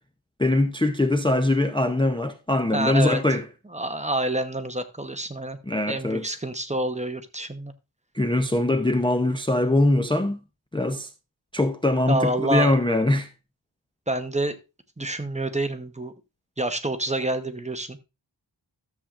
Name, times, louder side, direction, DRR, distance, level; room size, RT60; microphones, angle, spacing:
voice 1, 0.4-3.4 5.7-6.3 8.1-10.4 10.7-11.1 11.5-13.3, left 2 dB, 10° left, 0.6 m, -22 dB
voice 2, 2.7-3.2 3.7-5.6 5.9-7.7 12.1-12.8 14.1-14.6 15.0-16.1 16.6-18.0, right 1 dB, 15° right, 0.9 m, -27 dB
13.0 x 7.4 x 2.5 m
wide cardioid pair, 90°, 44 cm